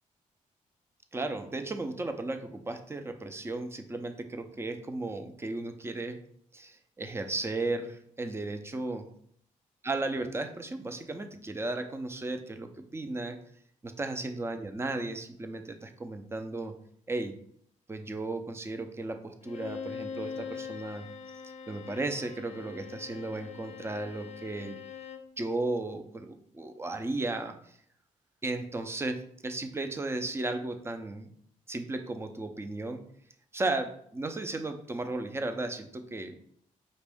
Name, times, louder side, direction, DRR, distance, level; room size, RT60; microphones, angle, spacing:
voice 1, 1.1-6.2 6.5-9.1 9.8-13.4 13.8-16.7 17.1-17.3 17.9-21.1 21.7-24.8 25.4-27.8 28.4-31.3 31.7-33.0 33.5-36.3, right 2 dB, 20° right, 7 dB, 0.5 m, -35 dB
Bowed string instrument, 19.4-25.3, left 6 dB, 50° left, 0.5 m, -42 dB
5.2 x 2.5 x 3.5 m, 0.66 s
cardioid pair, 95°, 14 cm